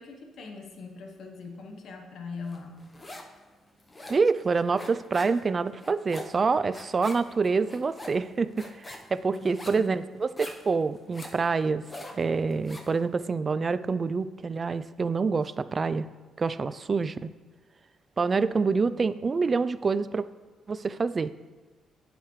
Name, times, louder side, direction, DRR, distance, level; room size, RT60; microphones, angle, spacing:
voice 1, 0.0-2.9 9.3-9.9, left 4 dB, 65° left, 3 dB, 1.0 m, -42 dB
sound 1, 2.5-3.4 3.7-13.0, left 1 dB, 25° left, 0.9 m, -44 dB
voice 2, 4.1-11.8 12.2-16.1 16.4-17.3 18.2-20.2 20.7-21.5, right 4 dB, 35° right, 14 dB, 0.3 m, -27 dB
9.2 x 6.6 x 3.1 m, 1.3 s
cardioid pair, 90°, 0 cm